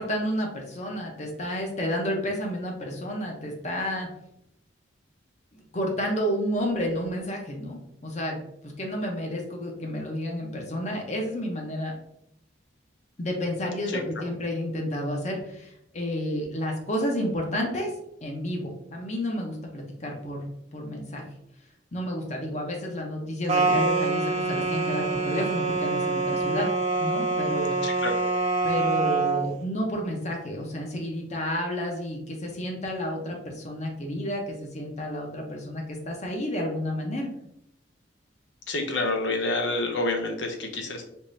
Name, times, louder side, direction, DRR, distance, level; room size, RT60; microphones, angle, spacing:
voice 1, 0.0-4.1 5.5-11.9 13.2-17.9 18.2-21.2 21.9-26.7 27.0-27.7 28.6-37.3, equal, 40° left, 1 dB, 0.7 m, -31 dB
sound 1, 23.5-29.5, right 3 dB, 40° right, 0.5 m, -25 dB
voice 2, 27.8-28.2 38.7-41.1, left 2 dB, 85° left, 4 dB, 0.6 m, -28 dB
3.6 x 3.0 x 2.6 m, 0.77 s
head